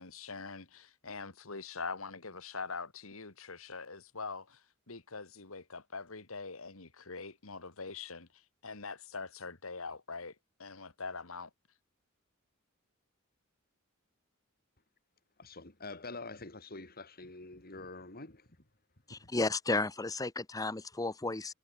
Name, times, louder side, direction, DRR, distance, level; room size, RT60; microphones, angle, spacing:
voice 1, 0.0-10.3 10.6-11.5, left 4 dB, 75° left, 2.2 m, -43 dB
voice 2, 15.4-18.5 19.2-19.3, left 3 dB, 45° left, 4.1 m, -46 dB
voice 3, 19.1-21.5, left 3 dB, 15° left, 0.8 m, -33 dB
head